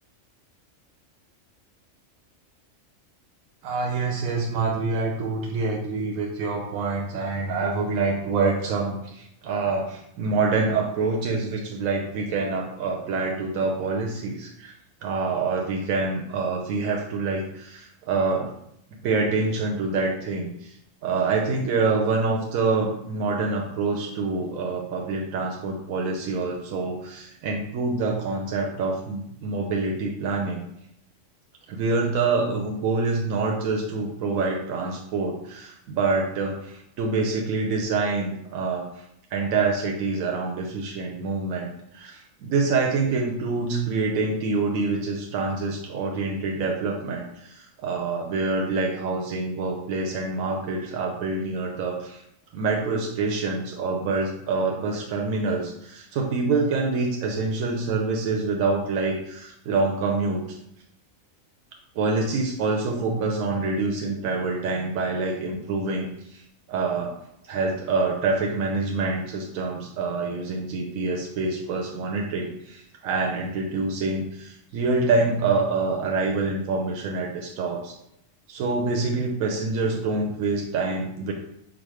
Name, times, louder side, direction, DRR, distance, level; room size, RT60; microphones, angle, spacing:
voice 1, 3.6-14.7 15.0-18.5 19.0-20.7 21.0-30.6 31.7-39.0 39.3-52.2 52.5-60.6 62.0-66.4 66.7-67.1 67.5-77.9 78.5-81.3, right 3 dB, 85° right, 0 dB, 1.0 m, -26 dB
5.0 x 2.1 x 4.7 m, 0.77 s
omnidirectional pair, 1.4 m